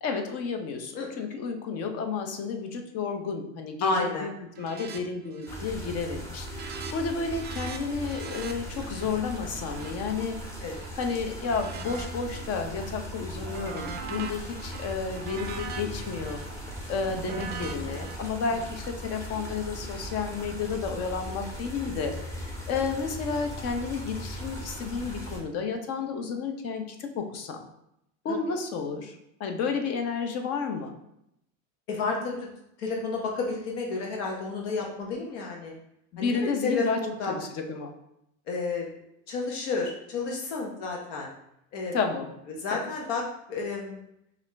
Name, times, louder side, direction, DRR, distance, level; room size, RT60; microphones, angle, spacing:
voice 1, 0.0-4.3 4.6-10.4 11.0-16.4 16.9-27.6 28.2-30.9 36.1-37.0 37.3-37.9 41.9-42.3, left 5 dB, 45° left, 5 dB, 0.7 m, -31 dB
voice 2, 3.8-4.3 10.6-10.8 18.5-18.6 28.3-28.4 31.9-32.5 32.8-35.7 36.2-37.4 38.5-38.9 39.3-41.3 41.7-41.9 42.6-43.2 43.5-44.0, left 3 dB, 75° left, 0 dB, 0.9 m, -31 dB
sound 1, 4.5-5.0 5.3-5.7 6.0-10.9 11.4-12.7 13.1-18.2, right 6 dB, 30° right, 0.4 m, -42 dB
sound 2, 5.5-25.4, equal, 10° left, 0.8 m, -38 dB
4.7 x 2.6 x 3.3 m, 0.80 s
supercardioid pair, 125°, 36 cm